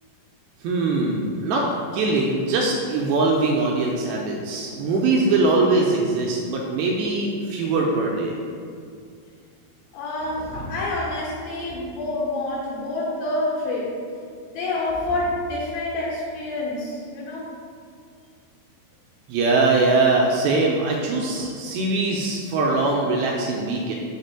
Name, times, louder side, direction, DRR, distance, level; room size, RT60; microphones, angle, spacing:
voice 1, 0.6-1.7 1.9-8.3 19.3-24.0, right 3 dB, 80° right, -1 dB, 2.3 m, -22 dB
voice 2, 9.9-13.9 14.5-17.5 21.4-21.5, left 2 dB, 75° left, -6 dB, 2.7 m, -27 dB
5.9 x 3.2 x 5.6 m, 2.3 s
omnidirectional pair, 4.6 m